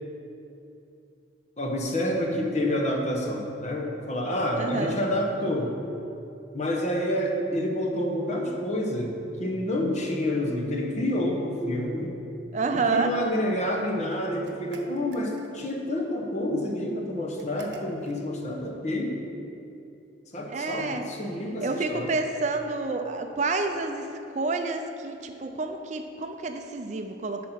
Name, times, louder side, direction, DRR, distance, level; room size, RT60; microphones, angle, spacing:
voice 1, 1.6-5.8 6.5-12.1 12.7-19.2 20.3-22.1, left 1 dB, 40° left, 1 dB, 1.0 m, -28 dB
voice 2, 4.6-5.0 12.5-13.1 20.5-21.0 21.6-27.5, right 3 dB, 40° right, 6 dB, 0.4 m, -29 dB
sound 1, 14.4-15.8 17.4-18.2, right 2 dB, 65° right, 0.8 m, -45 dB
10.0 x 4.2 x 5.8 m, 2.7 s
head